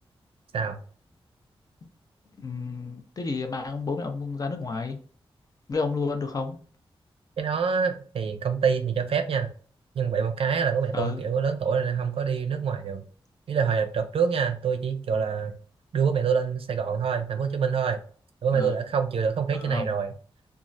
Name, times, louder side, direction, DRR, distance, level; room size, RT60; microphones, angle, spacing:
voice 1, 2.4-5.0 5.7-6.6 10.9-11.2 18.5-18.8 19.5-19.9, left 4 dB, 40° left, 6 dB, 0.5 m, -30 dB
voice 2, 7.4-9.5 9.9-13.0 13.5-15.5 15.9-18.0 18.4-20.1, right 6 dB, 75° right, 7 dB, 0.4 m, -26 dB
3.0 x 2.3 x 2.5 m, 0.43 s
wide cardioid pair, 155°, 10 cm